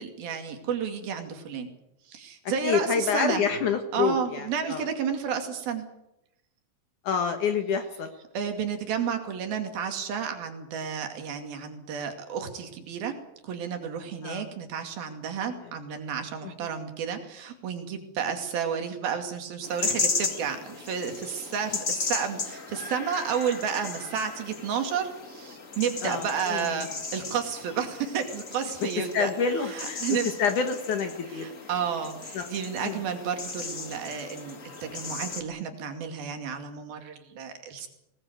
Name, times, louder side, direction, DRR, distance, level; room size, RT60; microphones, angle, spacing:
voice 1, 0.0-1.7 2.1-3.5 3.9-5.9 8.3-13.1 13.4-29.3 29.7-30.3 31.4-37.9, right 7 dB, 80° right, 5 dB, 4.3 m, -31 dB
voice 2, 2.6-4.8 7.0-8.1 14.2-14.5 16.4-16.5 26.0-26.8 29.1-30.0 30.4-31.5 32.3-32.5 32.8-33.0, left 6 dB, 65° left, 6 dB, 2.7 m, -27 dB
sound 1, 19.6-35.4, left 4 dB, 30° left, 1.5 m, -36 dB
20.0 x 20.0 x 8.1 m, 0.88 s
omnidirectional pair, 4.2 m